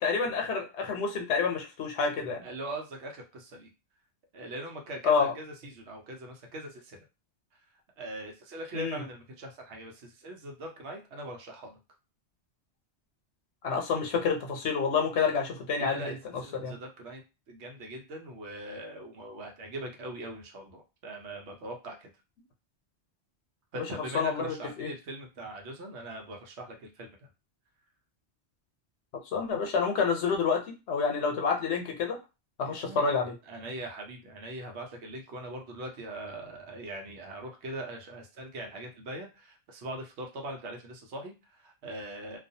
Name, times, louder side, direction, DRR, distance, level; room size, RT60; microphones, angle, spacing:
voice 1, 0.0-2.4 5.0-5.3 8.7-9.0 13.6-16.0 16.3-16.7 23.8-23.9 24.1-24.9 29.3-32.2 32.6-33.3, left 5 dB, 90° left, 3 dB, 1.0 m, -28 dB
voice 2, 2.4-3.7 4.3-7.0 8.0-11.8 15.8-16.2 16.4-17.2 17.5-22.1 23.7-27.1 32.6-33.1 33.5-42.4, right 1 dB, 85° right, 2 dB, 1.0 m, -41 dB
2.3 x 2.3 x 2.7 m, 0.28 s
omnidirectional pair, 1.1 m